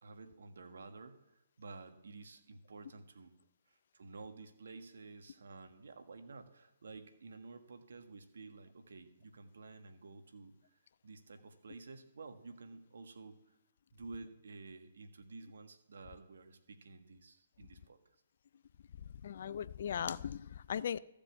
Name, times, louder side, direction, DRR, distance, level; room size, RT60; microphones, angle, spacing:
voice 1, 0.0-3.3 3.7-13.6 13.9-18.0, right 3 dB, 70° right, 1.5 m, -52 dB
voice 2, 19.2-21.0, left 8 dB, 55° left, 0.4 m, -38 dB
14.0 x 5.2 x 7.5 m
hypercardioid pair, 145°, 0 cm